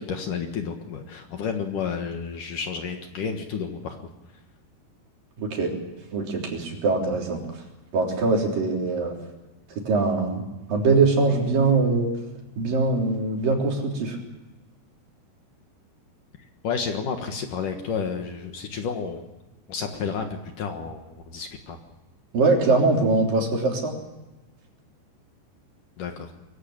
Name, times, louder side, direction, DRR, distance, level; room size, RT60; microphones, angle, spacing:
voice 1, 0.0-4.0 16.6-19.2 19.7-21.8 26.0-26.3, left 6 dB, 60° left, 5 dB, 2.7 m, -31 dB
voice 2, 5.4-5.7 6.1-7.4 7.9-9.2 9.8-10.4 10.7-12.1 12.6-14.2 22.3-23.9, right 3 dB, 55° right, 1 dB, 5.1 m, -22 dB
23.0 x 16.0 x 8.7 m, 1.1 s
omnidirectional pair, 4.7 m